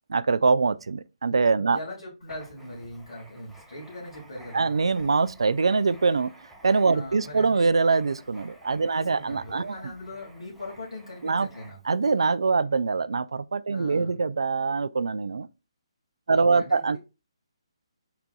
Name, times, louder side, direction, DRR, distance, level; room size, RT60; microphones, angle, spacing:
voice 1, 0.1-1.8 4.5-6.3 6.6-9.9 11.2-11.5 11.9-15.5 16.3-17.0, right 4 dB, 70° right, 0.3 m, -23 dB
voice 2, 1.7-4.7 6.9-7.7 8.9-12.0 13.7-14.2 16.3-17.0, left 1 dB, 80° left, 2.1 m, -40 dB
Writing, 2.2-12.0, equal, ahead, 0.6 m, -53 dB
4.5 x 3.8 x 2.3 m
figure-of-eight pair, 140°, 3 cm